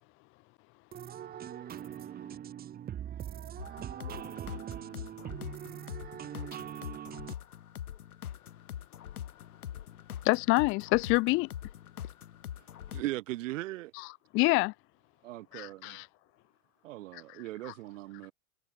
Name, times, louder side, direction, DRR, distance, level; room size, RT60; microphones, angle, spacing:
voice 1, 0.9-7.3, right 10 dB, 20° right, 1.2 m, -42 dB
sound 1, 3.6-13.0, left 10 dB, 80° left, 1.5 m, -43 dB
voice 2, 10.2-11.5 13.9-14.7 15.5-16.1 17.1-17.7, left 24 dB, 30° left, 0.6 m, -28 dB
voice 3, 12.9-13.9 15.2-16.0 16.8-18.3, right 17 dB, 60° right, 1.0 m, -38 dB
hypercardioid pair, 105°, 43 cm